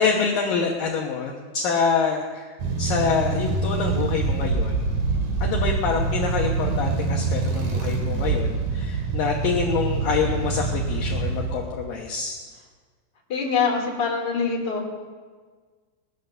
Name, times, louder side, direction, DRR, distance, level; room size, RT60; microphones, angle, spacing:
voice 1, 0.0-4.7 5.4-12.4, left 5 dB, 75° left, 0 dB, 2.0 m, -26 dB
sound 1, 2.6-11.7, right 4 dB, 50° right, 2.9 m, -25 dB
voice 2, 13.3-14.9, left 5 dB, 30° left, -1 dB, 2.5 m, -24 dB
19.5 x 10.5 x 6.8 m, 1.5 s
omnidirectional pair, 5.5 m